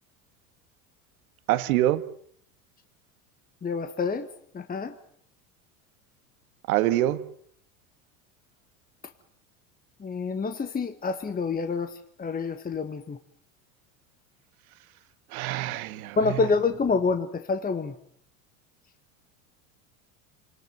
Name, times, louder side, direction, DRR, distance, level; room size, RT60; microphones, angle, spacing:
voice 1, 1.5-2.0 6.7-7.3 15.3-16.4, right 14 dB, 75° right, 1.7 m, -25 dB
voice 2, 3.6-4.3 4.5-4.9 10.0-13.2 16.2-18.0, left 4 dB, 20° left, 1.6 m, -27 dB
27.5 x 20.0 x 9.3 m
supercardioid pair, 100°, 43 cm